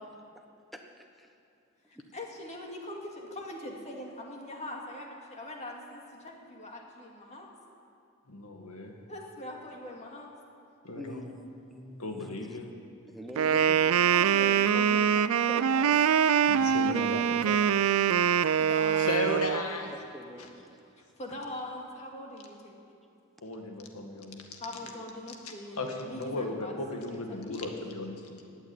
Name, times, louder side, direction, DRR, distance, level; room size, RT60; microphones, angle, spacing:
voice 1, 0.7-1.3 1.9-2.1 10.9-12.6 13.1-14.2 16.9-17.8 18.5-18.6 19.9-20.9 24.8-25.0 25.7-25.8, equal, ahead, 4 dB, 1.1 m, -45 dB
voice 2, 2.1-7.5 9.1-10.3 14.1-16.0 18.6-19.1 21.2-22.8 24.6-26.7 27.1-27.7, left 1 dB, 30° left, 0 dB, 2.2 m, -42 dB
voice 3, 8.3-8.9 10.8-11.3 12.0-12.7 16.5-17.0 19.0-19.9 23.4-24.6 25.8-28.4, left 2 dB, 85° left, 3 dB, 1.9 m, -35 dB
Wind instrument woodwind instrument, 13.4-19.6, right 8 dB, 70° right, 0.4 m, -24 dB
16.0 x 8.8 x 9.8 m, 2.6 s
head